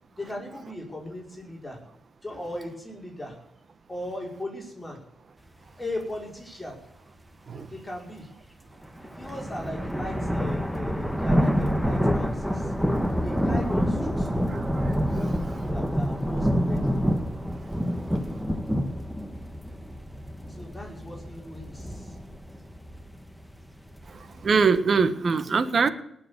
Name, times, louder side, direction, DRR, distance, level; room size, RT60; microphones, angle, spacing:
voice 1, 0.0-1.8 2.2-3.4 3.9-5.0 5.8-6.8 7.7-8.3 9.2-12.7 13.2-14.6 15.1-16.9 20.5-22.2, left 1 dB, 15° left, -2 dB, 5.5 m, -38 dB
sound 1, 8.8-24.8, equal, ahead, 1.3 m, -27 dB
voice 2, 14.5-14.8 24.4-25.9, right 5 dB, 45° right, 12 dB, 1.5 m, -23 dB
19.0 x 7.2 x 8.0 m, 0.79 s
cardioid pair, 85°, 0 cm